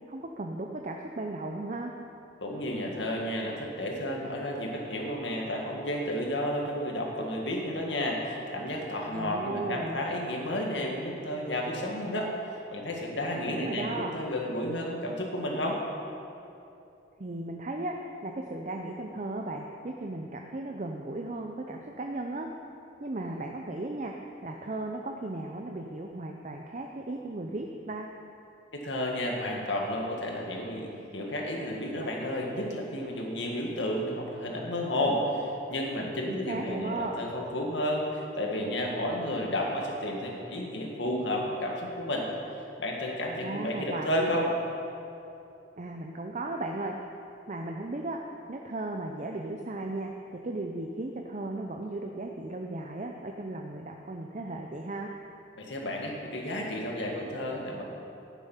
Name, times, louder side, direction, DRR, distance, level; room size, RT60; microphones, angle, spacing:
voice 1, 0.1-1.9 9.1-10.0 13.5-14.2 17.2-22.5 23.0-24.1 24.4-28.1 36.3-37.2 43.4-44.3 45.8-47.0 47.5-48.2 48.5-55.1, right 2 dB, 40° right, 2 dB, 0.6 m, -36 dB
voice 2, 2.4-12.3 12.7-15.8 28.7-42.3 42.8-44.5 55.6-57.8, left 1 dB, 85° left, 0 dB, 1.9 m, -32 dB
11.5 x 10.0 x 5.7 m, 2.7 s
head